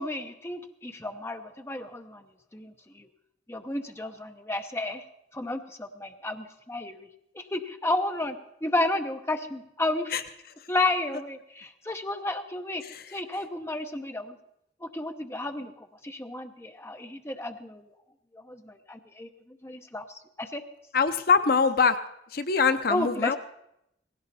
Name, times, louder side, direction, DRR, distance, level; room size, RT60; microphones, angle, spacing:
voice 1, 0.0-2.2 2.5-3.1 3.5-5.0 5.3-7.1 7.4-8.4 8.6-10.3 10.7-12.8 13.1-14.4 14.8-15.7 16.0-17.9 18.5-19.3 19.6-20.0 20.4-20.6 22.9-23.4, left 2 dB, 15° left, 6 dB, 0.8 m, -32 dB
voice 2, 20.9-22.0 22.3-23.4, left 5 dB, 55° left, 10 dB, 0.7 m, -23 dB
18.5 x 16.5 x 4.2 m, 0.79 s
head